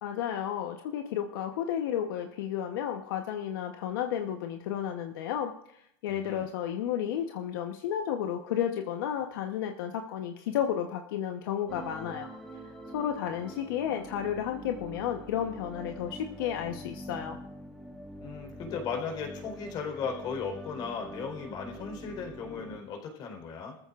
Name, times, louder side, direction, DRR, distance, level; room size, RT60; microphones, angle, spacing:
voice 1, 0.0-5.5 6.0-12.3 12.9-17.4, left 9 dB, 75° left, 4 dB, 1.0 m, -32 dB
voice 2, 6.1-6.5 18.2-23.7, left 5 dB, 35° left, 2 dB, 4.2 m, -36 dB
sound 1, 11.7-22.8, equal, ahead, 1.5 m, -44 dB
23.0 x 14.5 x 2.5 m, 0.75 s
supercardioid pair, 140°, 12 cm